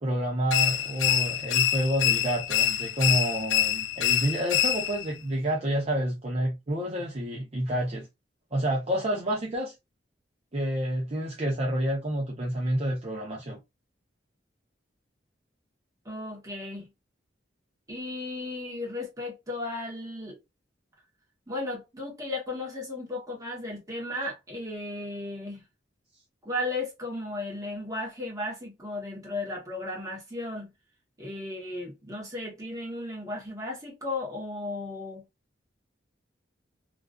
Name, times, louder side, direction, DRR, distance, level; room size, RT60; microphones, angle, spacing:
voice 1, 0.0-8.1 8.5-9.7 10.5-13.6, right 1 dB, 35° right, 0.6 m, -29 dB
sound 1, 0.5-5.1, left 10 dB, 85° left, 0.3 m, -26 dB
voice 2, 16.0-16.9 17.9-20.4 21.5-25.6 26.4-30.7 31.2-35.2, left 2 dB, 20° right, 0.9 m, -35 dB
2.4 x 2.3 x 2.3 m
head